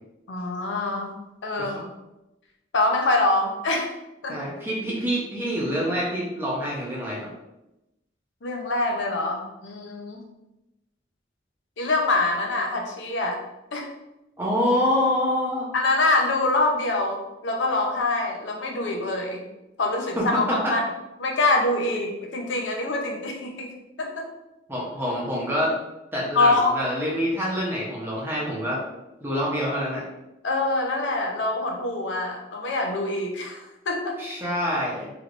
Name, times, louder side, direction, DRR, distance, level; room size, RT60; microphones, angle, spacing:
voice 1, 0.3-1.1 1.4-1.7 2.7-3.9 4.2-4.4 8.4-10.2 11.8-13.4 13.7-13.9 15.7-19.4 19.8-20.8 21.2-23.7 24.0-24.3 26.3-26.7 30.4-34.2, left 2 dB, 85° left, 1 dB, 0.6 m, -25 dB
voice 2, 4.3-7.3 14.4-15.7 20.2-20.7 24.7-25.7 26.1-28.8 29.2-30.0 34.2-35.1, equal, 10° right, -5 dB, 0.8 m, -26 dB
3.4 x 2.8 x 2.5 m, 0.94 s
head